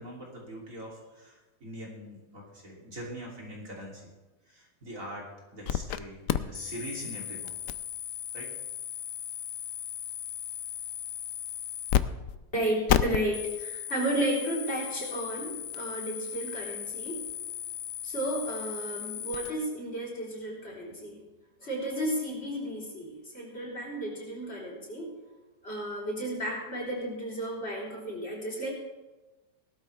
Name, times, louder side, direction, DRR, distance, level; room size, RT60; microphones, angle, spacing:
voice 1, 0.0-4.0 4.5-5.3 5.5-7.5 8.3-8.5, right 1 dB, 50° right, -3 dB, 3.2 m, -42 dB
sound 1, 5.7-6.0 6.3-12.0 12.3-12.4 12.9-19.5, left 11 dB, 70° left, 0.9 m, -34 dB
voice 2, 12.5-17.3 18.0-21.2 21.6-25.1 25.6-28.7, right 1 dB, 40° left, -4 dB, 3.9 m, -33 dB
18.5 x 12.5 x 3.3 m, 1.1 s
omnidirectional pair, 1.8 m